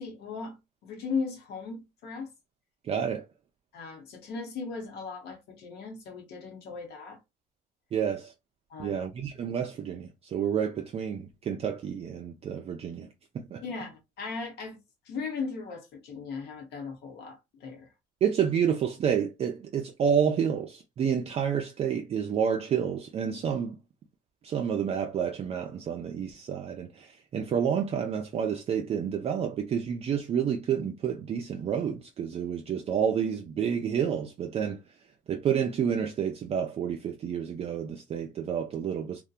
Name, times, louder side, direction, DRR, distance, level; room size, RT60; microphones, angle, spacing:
voice 1, 0.0-2.3 3.7-7.2 8.7-9.0 13.6-14.8 15.0-17.9, left 4 dB, 75° left, 0.8 m, -37 dB
voice 2, 2.8-3.3 7.9-8.3 8.8-13.6 18.2-23.8 24.4-35.0 35.3-39.2, right 8 dB, 40° right, 0.3 m, -29 dB
2.6 x 2.1 x 2.3 m
cardioid pair, 110°, 17 cm